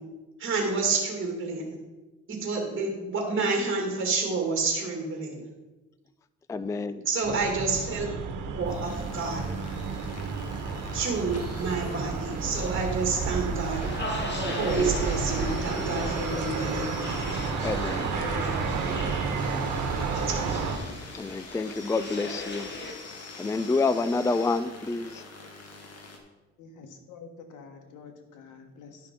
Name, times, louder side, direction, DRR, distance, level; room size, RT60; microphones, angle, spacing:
voice 1, 0.4-1.8 2.3-5.5 7.1-8.1 8.5-9.5 10.9-13.9 14.5-17.4 20.3-20.8, right 4 dB, 40° right, 1 dB, 2.4 m, -29 dB
voice 2, 6.5-7.0 17.6-18.2 21.1-22.7 23.4-25.2, left 3 dB, 10° left, 13 dB, 0.3 m, -28 dB
sound 1, 7.2-20.8, right 5 dB, 85° right, 1.3 m, -31 dB
sound 2, 8.7-26.2, left 3 dB, 55° left, 1.9 m, -45 dB
sound 3, 13.7-22.9, left 2 dB, 35° left, 1.9 m, -37 dB
voice 3, 26.6-29.1, left 5 dB, 85° left, 6 dB, 1.4 m, -47 dB
11.0 x 5.6 x 5.3 m, 1.1 s
cardioid pair, 90°, 30 cm